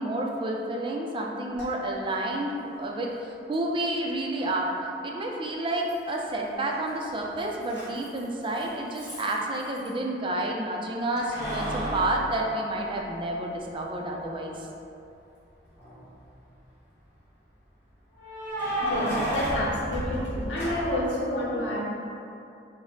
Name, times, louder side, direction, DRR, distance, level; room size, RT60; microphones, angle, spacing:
voice 1, 0.0-3.1 3.5-4.7 5.0-14.5, right 1 dB, 30° right, 0 dB, 0.4 m, -30 dB
Keys jangling, 1.5-1.6 3.5-3.6 5.9-6.4 6.7-9.9 11.2-13.3 13.8-13.9 15.6-16.2 18.1-21.1, equal, 15° left, 1.4 m, -33 dB
voice 2, 18.8-21.8, left 1 dB, 90° left, -4 dB, 0.8 m, -29 dB
4.8 x 2.0 x 3.9 m, 2.7 s
head